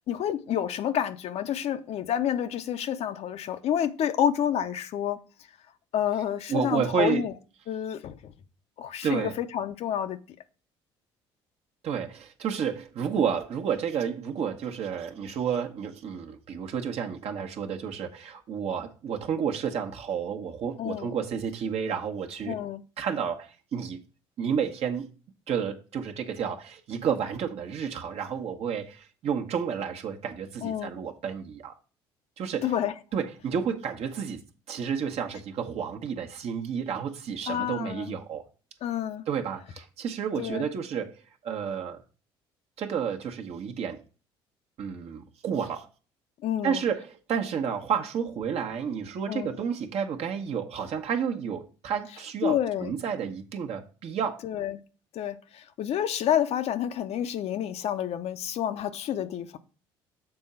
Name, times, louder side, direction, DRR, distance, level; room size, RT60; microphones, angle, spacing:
voice 1, 0.1-5.2 5.9-7.3 7.7-8.3 8.8-10.2 20.8-21.2 22.5-22.8 30.6-30.9 32.6-32.9 37.5-38.2 38.8-39.2 40.4-40.7 46.4-46.8 49.3-49.6 52.4-53.0 54.4-54.8 55.1-59.6, left 10 dB, 60° left, 0.7 m, -29 dB
voice 2, 6.5-7.2 9.0-9.3 11.8-22.6 23.0-24.0 24.4-25.1 25.5-31.7 32.4-32.7 33.1-34.4 34.7-38.5 39.3-41.1 41.4-42.0 42.8-44.0 44.8-45.9 46.6-54.4, right 7 dB, 55° right, 1.2 m, -31 dB
6.8 x 3.8 x 5.5 m
hypercardioid pair, 60°, 12 cm